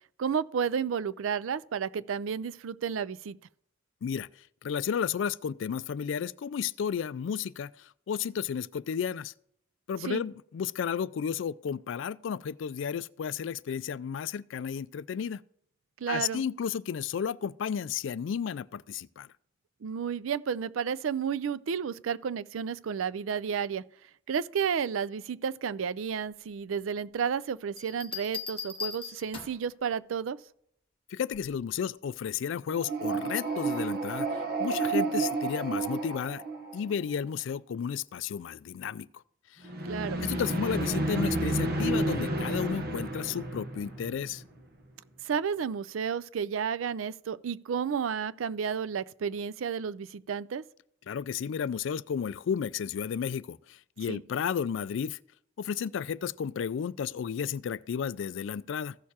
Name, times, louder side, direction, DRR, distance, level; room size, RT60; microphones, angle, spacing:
voice 1, 0.2-3.4 10.0-10.2 16.0-16.4 19.8-23.8 24.3-30.4 39.8-40.2 45.2-50.6 54.1-54.2, right 7 dB, 85° right, 0.4 m, -32 dB
voice 2, 4.6-9.3 9.9-15.4 16.1-19.3 31.1-36.4 36.7-39.2 39.5-39.6 40.2-44.4 51.1-55.2 55.6-59.0, left 7 dB, 65° left, 0.3 m, -33 dB
Bell, 27.8-29.7 31.3-31.7, left 7 dB, 25° left, 1.0 m, -39 dB
sound 1, 32.7-37.0 39.6-44.6, right 2 dB, 50° right, 1.1 m, -31 dB
15.0 x 6.5 x 2.9 m
head